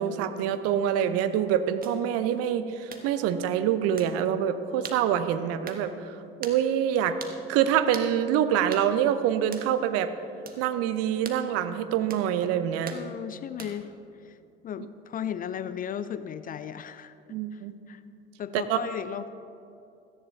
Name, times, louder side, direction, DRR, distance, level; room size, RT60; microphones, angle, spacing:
voice 1, 0.0-7.2 7.5-10.1 10.6-13.0 17.3-17.7 18.5-18.8, right 9 dB, 50° right, 11 dB, 0.8 m, -26 dB
sound 1, 1.8-2.0 2.9-3.1 4.0-4.1 4.8-5.0 5.7-5.8 6.4-6.6 7.2-7.4 7.9-8.1 8.7-8.9 9.5-9.7 10.5-10.6 11.2-11.4 12.1-12.3 12.9-13.0 13.6-13.9, right 5 dB, 30° right, 1.3 m, -41 dB
voice 2, 12.9-14.4 14.6-17.1 17.5-18.0 18.4-19.3, left 9 dB, 30° left, 13 dB, 0.4 m, -36 dB
17.0 x 14.5 x 2.7 m, 2.6 s
figure-of-eight pair, 65°, 31 cm